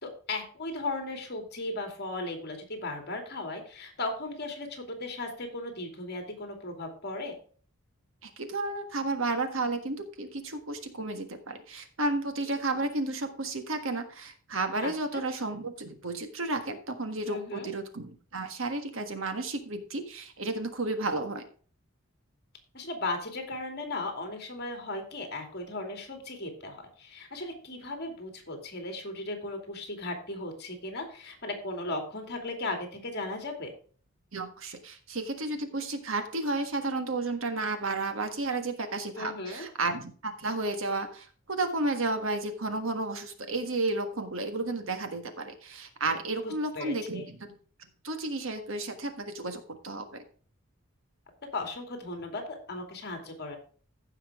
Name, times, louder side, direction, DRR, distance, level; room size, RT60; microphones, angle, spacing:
voice 1, 0.0-7.3 14.8-15.2 17.2-17.7 22.7-33.7 39.2-39.7 46.4-47.3 51.5-53.6, left 2 dB, 50° left, 4 dB, 2.6 m, -36 dB
voice 2, 8.2-21.4 34.3-47.5 48.0-50.2, right 2 dB, 65° right, 7 dB, 1.5 m, -32 dB
15.0 x 5.8 x 3.6 m, 0.42 s
head